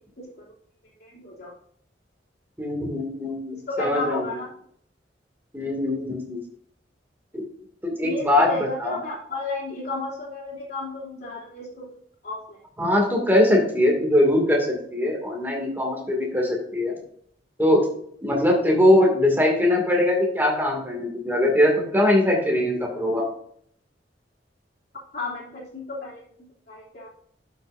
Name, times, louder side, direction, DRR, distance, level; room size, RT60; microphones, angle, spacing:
voice 1, 1.0-1.5 3.5-4.5 8.0-11.9 12.2-12.6 25.1-27.1, left 2 dB, 60° left, -5 dB, 3.1 m, -33 dB
voice 2, 2.6-4.3 5.5-6.4 7.3-7.4 7.8-8.5 8.8-9.0 12.8-16.9 17.6-17.8 18.2-23.3, left 1 dB, 10° right, -1 dB, 2.4 m, -21 dB
11.5 x 6.9 x 2.7 m, 0.64 s
head